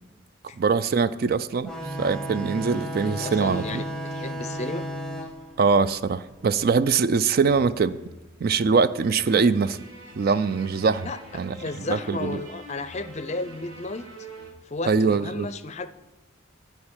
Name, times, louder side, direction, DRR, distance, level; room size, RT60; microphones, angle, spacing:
voice 1, 0.6-1.7 2.0-3.8 5.6-8.0 8.4-9.8 10.2-11.1 11.3-11.6 11.9-12.4 14.8-15.5, right 5 dB, 45° right, 14 dB, 0.3 m, -22 dB
sound 1, 1.6-6.8, right 1 dB, 5° left, 0.9 m, -34 dB
voice 2, 3.2-3.9 4.1-4.8 11.0-11.2 11.6-14.1 14.7-15.9, left 2 dB, 30° left, 12 dB, 0.5 m, -33 dB
sound 2, 7.4-14.5, right 1 dB, 70° right, 1.7 m, -46 dB
13.0 x 4.8 x 8.7 m, 1.1 s
head